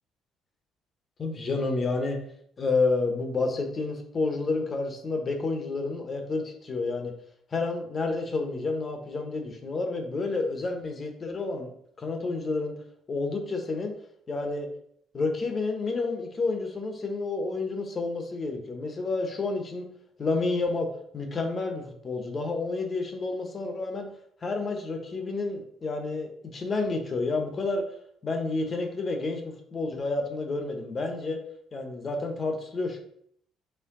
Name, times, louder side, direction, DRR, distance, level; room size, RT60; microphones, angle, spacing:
voice 1, 1.2-2.2 2.6-7.1 7.5-11.7 12.0-12.7 13.1-13.9 14.3-14.7 15.1-19.9 20.2-24.1 24.4-27.9 28.2-31.4 31.7-33.0, left 3 dB, 30° left, 4 dB, 0.8 m, -30 dB
4.5 x 3.2 x 3.7 m, 0.67 s
cardioid pair, 125°, 0 cm